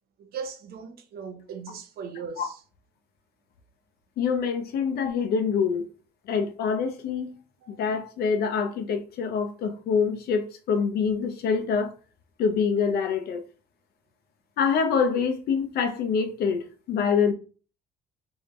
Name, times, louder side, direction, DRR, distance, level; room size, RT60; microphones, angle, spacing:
voice 1, 0.2-2.6 7.6-7.8, right 6 dB, 65° right, 0.8 m, -38 dB
voice 2, 4.2-5.8 6.3-7.4 7.7-11.9 12.4-13.4 14.6-17.3, left 6 dB, 70° left, 0.8 m, -25 dB
3.6 x 3.5 x 3.2 m
cardioid pair, 110°, 17 cm